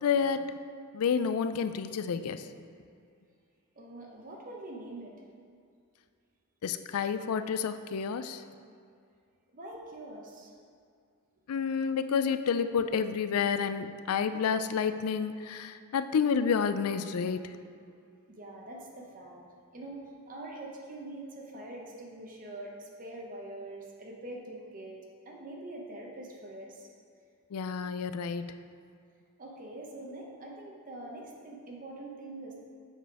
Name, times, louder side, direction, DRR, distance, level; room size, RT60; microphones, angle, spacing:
voice 1, 0.0-0.5 0.9-2.5 6.6-8.4 11.5-17.6 27.5-28.6, left 6 dB, 75° left, 11 dB, 0.4 m, -29 dB
voice 2, 3.7-5.2 9.5-10.5 18.3-19.5 19.7-26.9 29.4-32.6, right 1 dB, 40° right, -1 dB, 0.9 m, -44 dB
7.3 x 5.6 x 4.8 m, 2.3 s
head